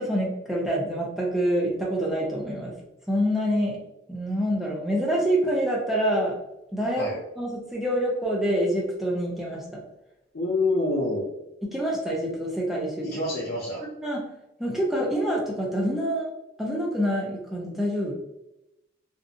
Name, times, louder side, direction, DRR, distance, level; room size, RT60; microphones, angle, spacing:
voice 1, 0.0-2.7 3.1-3.8 4.1-6.4 6.7-7.1 7.4-9.8 11.6-13.2 14.0-14.2 14.6-16.3 16.6-18.1, equal, ahead, -4 dB, 0.5 m, -26 dB
voice 2, 10.3-11.3 13.0-13.8, left 2 dB, 50° left, -7 dB, 0.5 m, -26 dB
2.5 x 2.0 x 2.6 m, 0.90 s
head